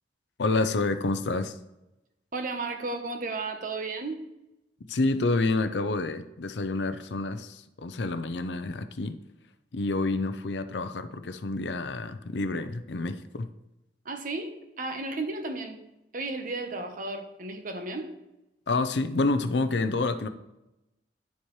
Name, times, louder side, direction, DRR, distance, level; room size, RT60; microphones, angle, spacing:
voice 1, 0.4-1.6 4.9-9.2 9.7-13.5 18.7-20.3, left 3 dB, 80° left, 10 dB, 0.6 m, -28 dB
voice 2, 2.3-4.3 14.0-15.8 16.1-18.1, right 3 dB, 50° right, 6 dB, 1.0 m, -34 dB
10.5 x 7.3 x 3.2 m, 0.93 s
head